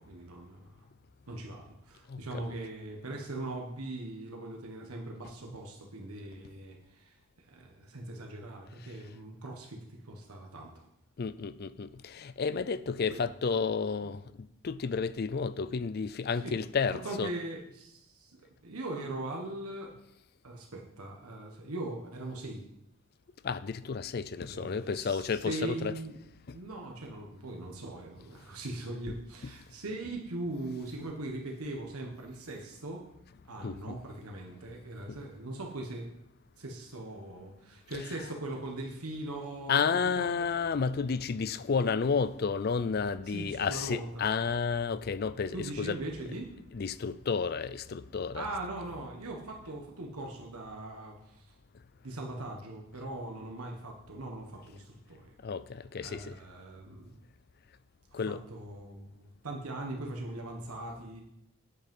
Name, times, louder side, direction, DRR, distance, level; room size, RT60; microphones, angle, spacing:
voice 1, 0.1-0.8 1.3-10.8 13.1-13.2 16.4-16.5 17.0-19.9 20.4-22.6 24.4-26.2 26.5-33.0 33.5-36.1 36.6-40.5 43.3-44.2 45.5-46.5 48.3-51.5 52.0-55.3 56.0-57.2 58.1-61.2, right 2 dB, 85° right, 1.4 m, -40 dB
voice 2, 2.1-2.4 11.2-17.3 23.4-26.0 26.5-26.6 33.6-34.0 35.1-35.2 39.7-46.0 46.7-48.4 55.4-56.3 58.1-58.4, left 5 dB, 45° left, 0.4 m, -31 dB
8.5 x 8.0 x 5.4 m
head